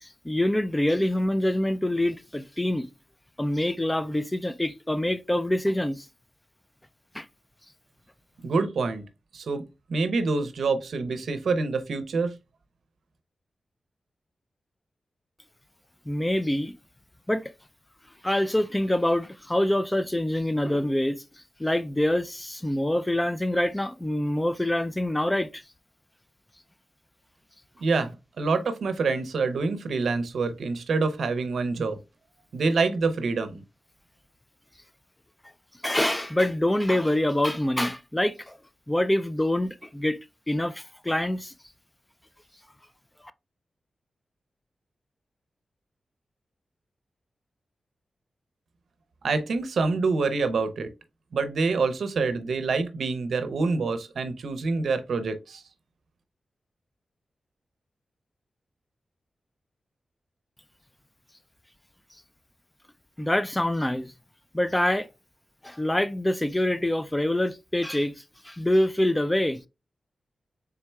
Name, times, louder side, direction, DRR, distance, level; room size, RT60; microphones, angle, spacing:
voice 1, 0.0-2.9 3.4-6.1 7.1-7.2 16.1-16.7 17.3-17.5 18.2-21.2 21.6-25.6 35.8-38.6 38.9-40.2 40.5-41.5 63.2-64.1 64.5-65.1 65.6-69.6, left 1 dB, 10° left, 0.3 m, -25 dB
voice 2, 8.4-9.0 9.3-9.6 9.9-12.3 27.8-28.1 28.4-32.0 32.5-33.6 49.2-50.9 51.3-55.6, right 4 dB, 80° right, 0.6 m, -26 dB
4.2 x 3.6 x 2.2 m
cardioid pair, 65°, 0 cm